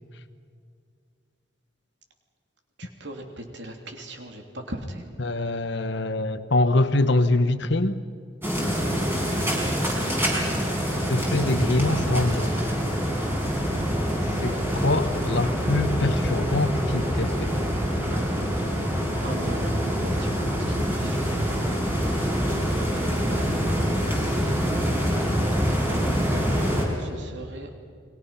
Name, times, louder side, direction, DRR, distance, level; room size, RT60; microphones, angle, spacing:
voice 1, 2.8-5.1 10.4-10.8 19.2-21.6 23.3-25.1 25.5-27.7, right 1 dB, 60° right, 3 dB, 3.1 m, -40 dB
voice 2, 5.2-8.0 11.1-12.6 14.4-17.5, left 2 dB, 60° left, 11 dB, 1.2 m, -24 dB
sound 1, 8.4-26.9, equal, 10° right, 4.7 m, -25 dB
29.5 x 23.0 x 5.8 m, 2.1 s
head